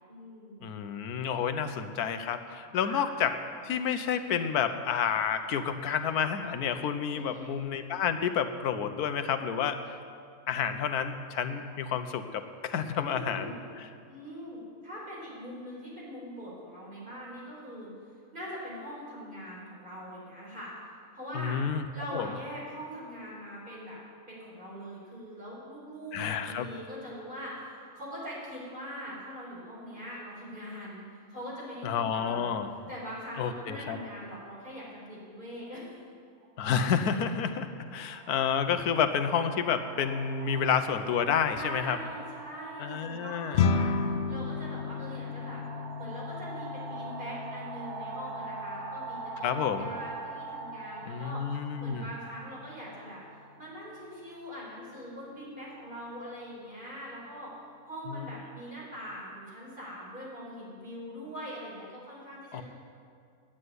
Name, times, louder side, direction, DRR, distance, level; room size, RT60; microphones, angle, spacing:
voice 1, 0.1-0.8 2.8-3.0 7.1-7.5 13.0-13.6 14.1-17.9 18.3-20.7 21.1-21.6 21.9-24.0 24.3-32.6 32.9-35.9 41.5-45.6 46.0-62.6, equal, 35° right, -6 dB, 4.7 m, -42 dB
voice 2, 0.6-3.3 3.6-9.8 10.5-13.9 21.3-21.9 22.1-22.3 26.1-26.7 31.8-32.7 33.4-34.0 36.6-42.0 42.8-43.6 49.4-49.9 51.1-52.1 58.1-58.2 62.5-62.6, left 7 dB, 85° left, 8 dB, 1.3 m, -30 dB
sound 1, 36.4-36.6 37.6-54.2, right 4 dB, 75° right, 1.4 m, -44 dB
sound 2, 43.5-53.0, left 5 dB, 60° left, 0.8 m, -34 dB
9.8 x 8.9 x 9.5 m, 2.2 s
omnidirectional pair, 1.6 m